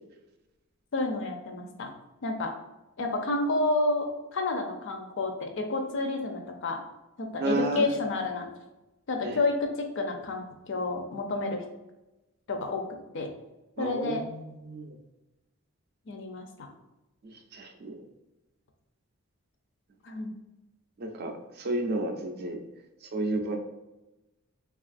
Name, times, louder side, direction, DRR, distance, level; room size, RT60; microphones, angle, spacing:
voice 1, 0.9-1.9 2.2-2.5 3.0-6.8 7.2-8.5 9.1-11.6 12.5-12.8 13.1-13.3 13.8-14.2 16.1-16.7 20.0-20.3, left 2 dB, 60° left, 4 dB, 0.4 m, -30 dB
voice 2, 7.4-7.9 9.2-9.4 13.8-14.9 17.5-18.0 21.0-22.6 23.1-23.6, right 2 dB, 45° right, 4 dB, 0.4 m, -31 dB
3.2 x 2.3 x 2.4 m, 1.0 s
head